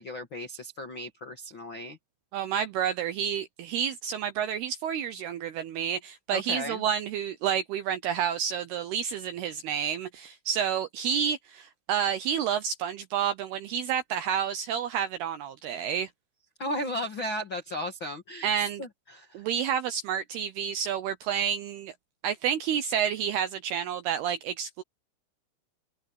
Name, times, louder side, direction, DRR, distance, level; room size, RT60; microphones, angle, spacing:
voice 1, 0.0-2.0 6.3-6.8 16.6-18.5 18.8-19.4, left 1 dB, 60° left, 1.2 m, -35 dB
voice 2, 2.3-16.1 18.4-18.8 19.3-21.9 22.2-24.8, right 8 dB, 80° right, 2.3 m, -29 dB
open air
omnidirectional pair, 5.6 m